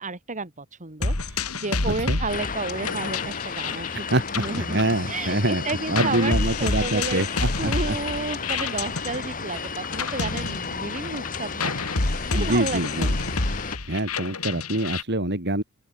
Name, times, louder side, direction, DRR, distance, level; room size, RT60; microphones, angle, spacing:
voice 1, 0.0-4.0 4.4-4.8 5.1-7.2 7.6-11.7 12.3-13.1, right 3 dB, 35° right, 3.1 m, -32 dB
sound 1, 1.0-5.4 5.7-15.0, left 3 dB, 80° left, 2.7 m, -29 dB
voice 2, 1.9-2.2 4.1-7.9 12.3-13.1 13.9-15.6, right 1 dB, 50° right, 4.7 m, -25 dB
sound 2, 2.3-13.8, left 4 dB, 40° left, 7.6 m, -33 dB
open air
head